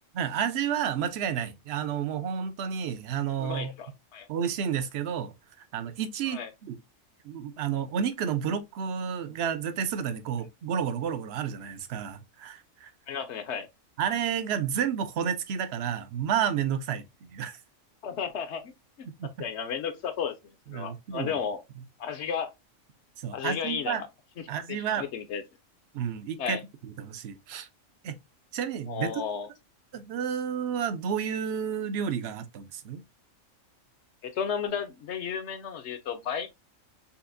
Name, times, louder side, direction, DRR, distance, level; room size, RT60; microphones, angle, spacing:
voice 1, 0.1-3.7 4.3-5.3 5.7-6.8 7.2-12.9 14.0-17.6 19.1-19.3 20.7-21.4 23.2-24.0 24.5-25.1 25.9-27.7 28.0-28.2 28.5-29.2 29.9-33.0, right 8 dB, 60° right, 0.8 m, -31 dB
voice 2, 3.4-4.3 6.3-6.5 13.1-13.7 18.0-18.7 19.0-19.1 19.4-21.6 22.0-22.5 23.3-24.1 24.7-25.4 26.4-26.6 28.9-29.5 34.2-36.5, left 7 dB, 60° left, 0.9 m, -33 dB
5.5 x 2.6 x 2.5 m
omnidirectional pair, 1.4 m